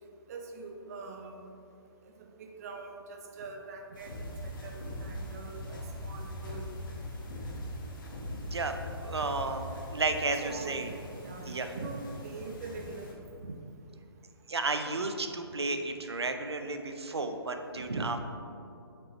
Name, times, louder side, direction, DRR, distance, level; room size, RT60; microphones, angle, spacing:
voice 1, 0.3-1.4 2.4-6.6 10.4-10.8 11.2-13.2, right 4 dB, 35° right, 3 dB, 0.7 m, -44 dB
sound 1, 3.9-13.1, left 1 dB, 50° left, 1.3 m, -41 dB
voice 2, 8.2-9.6 9.9-10.9 11.4-11.9 13.4-13.6 14.5-18.2, right 3 dB, 80° right, 6 dB, 0.7 m, -33 dB
6.9 x 5.3 x 3.0 m, 2.6 s
figure-of-eight pair, 135°, 14 cm